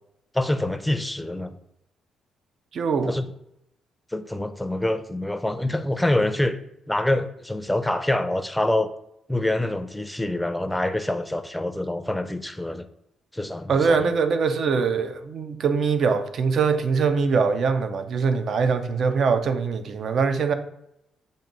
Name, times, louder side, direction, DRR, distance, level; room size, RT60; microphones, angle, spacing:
voice 1, 0.3-1.6 3.1-3.2 4.1-6.6 6.9-8.9 9.3-12.9 13.3-14.1, left 1 dB, 5° left, 0.5 m, -26 dB
voice 2, 2.7-3.2 13.7-20.5, right 5 dB, 60° right, 0.5 m, -23 dB
7.2 x 2.6 x 5.2 m
cardioid pair, 90°, 0 cm